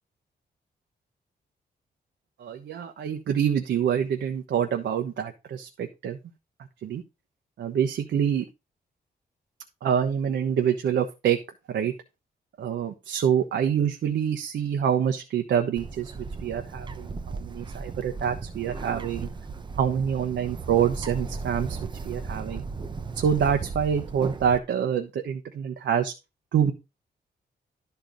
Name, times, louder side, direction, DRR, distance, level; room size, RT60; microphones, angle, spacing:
voice 1, 2.4-6.2 6.8-7.0 7.6-8.4 9.8-11.4 11.7-11.9 12.6-19.3 19.8-21.8 22.0-22.6 23.1-26.1 26.5-26.7, right 8 dB, 90° right, 5 dB, 1.0 m, -26 dB
Bird, 15.8-24.6, right 4 dB, 25° right, 0.7 m, -36 dB
12.0 x 4.5 x 5.2 m, 0.26 s
wide cardioid pair, 165°, 18 cm